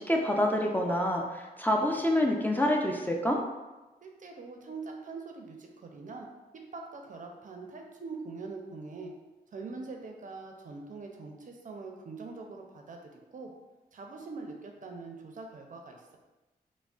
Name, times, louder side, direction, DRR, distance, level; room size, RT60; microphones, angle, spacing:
voice 1, 0.0-3.4, left 1 dB, 10° left, 0 dB, 0.4 m, -27 dB
voice 2, 4.0-6.3 6.7-9.1 9.5-13.5 13.9-16.2, right 4 dB, 50° right, 2 dB, 0.5 m, -43 dB
3.5 x 2.0 x 2.3 m, 1.1 s
cardioid pair, 55°, 17 cm